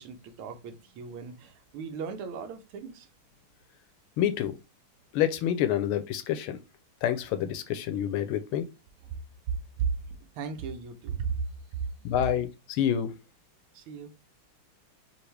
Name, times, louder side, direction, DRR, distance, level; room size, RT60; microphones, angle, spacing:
voice 1, 0.0-3.1 9.1-9.2 9.8-9.9 10.3-11.4 13.7-14.1, right 6 dB, 75° right, 1.6 m, -35 dB
voice 2, 4.2-4.6 5.1-6.6 7.0-8.7 12.0-13.1, left 10 dB, 80° left, 1.5 m, -28 dB
5.8 x 2.5 x 3.3 m
omnidirectional pair, 2.4 m